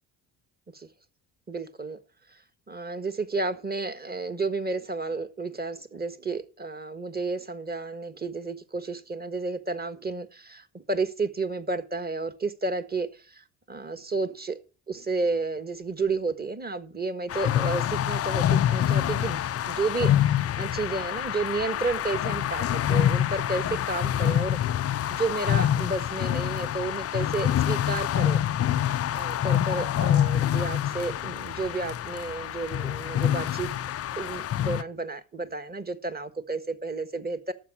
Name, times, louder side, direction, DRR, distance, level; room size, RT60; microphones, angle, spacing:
voice 1, 1.5-2.0 2.3-2.4 2.7-14.6 14.9-19.4 19.7-24.6 25.1-28.4 29.1-33.7 34.2-37.5, right 3 dB, 20° right, 11 dB, 1.5 m, -31 dB
sound 1, 17.3-34.8, left 11 dB, 30° left, 0.4 m, -26 dB
12.0 x 7.4 x 6.2 m, 0.36 s
hypercardioid pair, 55°, 50 cm